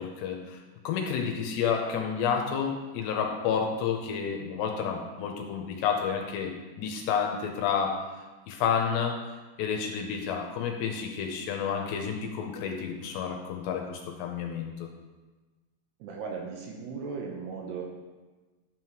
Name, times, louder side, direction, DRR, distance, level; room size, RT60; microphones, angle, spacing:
voice 1, 0.0-6.5 6.8-8.0 8.5-9.2 9.6-14.9, left 7 dB, 80° left, 2 dB, 2.8 m, -30 dB
voice 2, 16.0-17.8, right 5 dB, 75° right, 0 dB, 2.7 m, -37 dB
12.0 x 7.5 x 3.1 m, 1.3 s
omnidirectional pair, 5.3 m